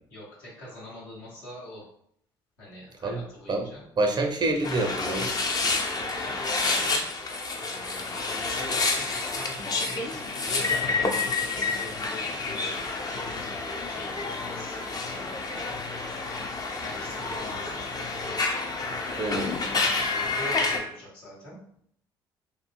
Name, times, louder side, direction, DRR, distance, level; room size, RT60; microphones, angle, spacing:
voice 1, 0.1-1.9 2.6-3.8 5.6-7.0 7.5-13.6 13.8-15.8 16.7-18.2 18.8-19.5 20.1-21.6, left 1 dB, 75° left, -7 dB, 1.3 m, -44 dB
voice 2, 4.0-5.3 19.1-19.5, right 2 dB, 35° right, 3 dB, 0.5 m, -27 dB
sound 1, 4.6-20.8, left 3 dB, 30° left, 0.5 m, -29 dB
2.6 x 2.6 x 2.5 m, 0.66 s
hypercardioid pair, 50°, 13 cm